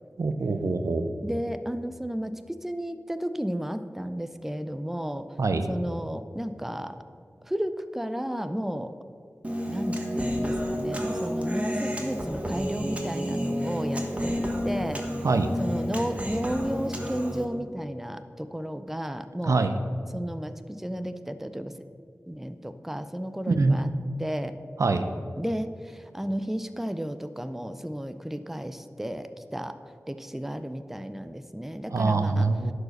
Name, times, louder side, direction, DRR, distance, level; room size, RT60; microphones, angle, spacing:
voice 1, 0.2-1.1 5.4-5.7 15.2-15.5 19.4-19.8 23.5-23.8 24.8-25.1 31.9-32.7, right 3 dB, 85° right, 8 dB, 0.6 m, -24 dB
voice 2, 1.2-5.3 5.7-7.0 7.4-8.9 9.7-15.1 15.6-19.6 20.1-21.7 22.3-23.9 24.2-24.6 25.4-29.8 30.1-32.5, equal, 5° right, 10 dB, 0.5 m, -33 dB
Human voice, 9.4-17.5, equal, 25° right, 1.3 m, -30 dB
11.0 x 4.9 x 6.5 m, 2.2 s
wide cardioid pair, 70°, 5 cm